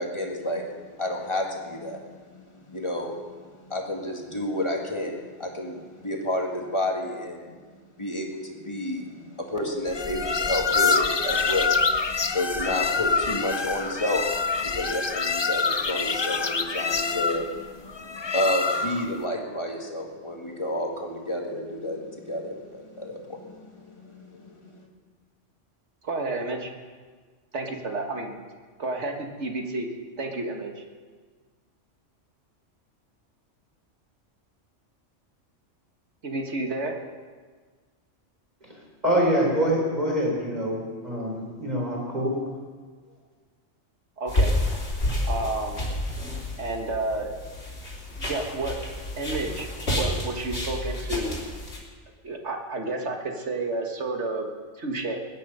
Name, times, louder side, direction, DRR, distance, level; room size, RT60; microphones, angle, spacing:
voice 1, 0.0-24.9, left 1 dB, 25° left, 0 dB, 2.0 m, -31 dB
sound 1, 9.9-19.2, left 4 dB, 40° left, 0.4 m, -26 dB
voice 2, 26.0-26.7 27.5-28.3 28.8-29.9 30.2-30.8 36.2-37.0 44.2-44.6 45.3-45.8 46.6-47.3 48.2-48.8 49.2-51.4 52.2-54.5 54.8-55.2, right 2 dB, 65° right, 2 dB, 1.9 m, -30 dB
voice 3, 39.0-40.8 41.0-42.3, equal, 35° right, -2 dB, 4.3 m, -25 dB
sound 2, 44.3-51.8, left 1 dB, 60° left, 3.6 m, -29 dB
20.5 x 9.8 x 5.6 m, 1.5 s
omnidirectional pair, 1.3 m